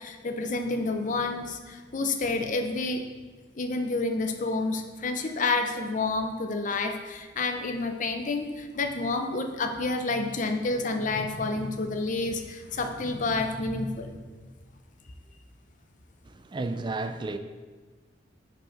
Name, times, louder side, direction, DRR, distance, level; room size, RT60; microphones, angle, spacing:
voice 1, 0.0-3.0 3.6-14.2, left 3 dB, 45° left, 0.6 m, -29 dB
voice 2, 16.2-17.4, right 2 dB, 25° right, 0.3 m, -32 dB
5.5 x 5.1 x 5.0 m
head